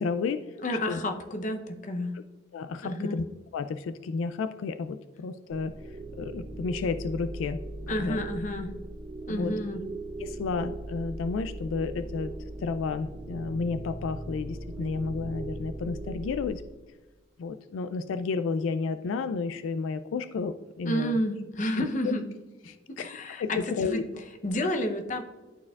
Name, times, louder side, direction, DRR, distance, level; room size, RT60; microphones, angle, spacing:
voice 1, 0.0-0.4 0.9-1.0 2.5-3.2 3.5-5.7 6.2-7.6 7.9-8.2 9.3-9.5 10.2-12.3 12.6-16.6 17.4-21.1 21.8-21.9 22.7-23.1 23.4-24.0, left 4 dB, 85° left, 11 dB, 0.3 m, -31 dB
voice 2, 0.6-2.1 2.8-3.2 7.9-8.7 9.3-9.8 20.8-22.3 23.0-24.1 24.4-25.2, equal, 40° left, 5 dB, 0.7 m, -30 dB
sound 1, 5.5-16.5, right 2 dB, 35° right, 0.7 m, -39 dB
12.0 x 4.3 x 2.3 m, 1.3 s
head